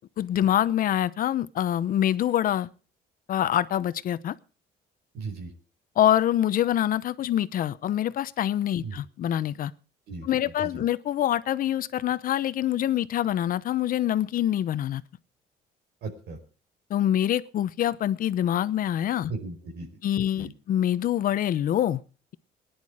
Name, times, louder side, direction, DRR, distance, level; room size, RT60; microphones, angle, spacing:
voice 1, 0.2-2.7 3.3-4.3 6.0-9.7 10.2-15.0 16.9-19.3 20.0-22.0, left 11 dB, 55° left, 0.8 m, -25 dB
voice 2, 5.1-5.5 8.7-9.0 10.1-10.8 16.0-16.4 19.3-19.9 20.3-20.5, right 4 dB, 75° right, 4.6 m, -37 dB
18.0 x 10.5 x 4.9 m
cardioid pair, 110°, 17 cm